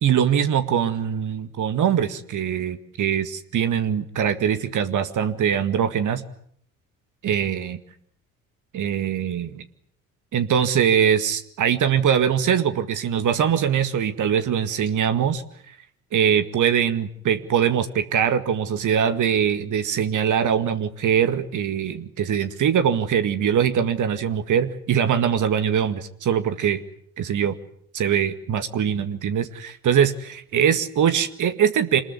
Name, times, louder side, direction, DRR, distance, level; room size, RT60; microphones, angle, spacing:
voice 1, 0.0-6.2 7.2-7.8 8.7-9.6 10.3-15.4 16.1-26.8 27.2-27.6 27.9-32.0, right 8 dB, 45° right, 10 dB, 2.0 m, -22 dB
27.0 x 21.5 x 9.5 m, 0.66 s
figure-of-eight pair, 50°, 44 cm